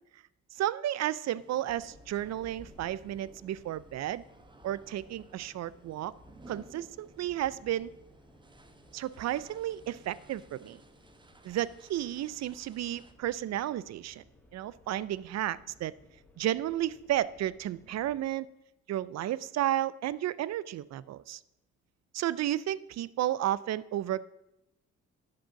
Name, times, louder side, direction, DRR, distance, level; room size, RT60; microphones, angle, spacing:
voice 1, 0.5-4.2 4.6-6.1 6.5-7.9 8.9-10.8 11.4-14.2 14.5-15.9 16.4-18.5 18.9-21.4 22.1-24.2, right 13 dB, 60° right, 19 dB, 0.5 m, -32 dB
sound 1, 1.3-13.1, right 2 dB, 15° right, 1.0 m, -58 dB
sound 2, 1.7-18.2, left 1 dB, 5° left, 1.8 m, -59 dB
11.5 x 5.4 x 6.8 m, 0.87 s
cardioid pair, 90°, 30 cm